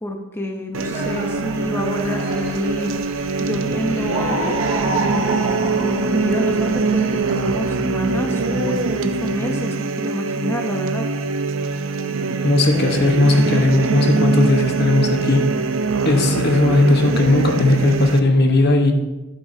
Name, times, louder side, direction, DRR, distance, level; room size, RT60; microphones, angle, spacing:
voice 1, 0.0-11.1, left 1 dB, 10° left, 2 dB, 0.7 m, -28 dB
sound 1, 0.7-18.2, right 4 dB, 80° right, 0.6 m, -23 dB
sound 2, 0.9-7.7, right 1 dB, 35° right, 1.7 m, -30 dB
voice 2, 12.4-15.5 16.0-18.9, left 2 dB, 55° left, 4 dB, 1.1 m, -16 dB
12.0 x 8.4 x 2.7 m, 1.1 s
head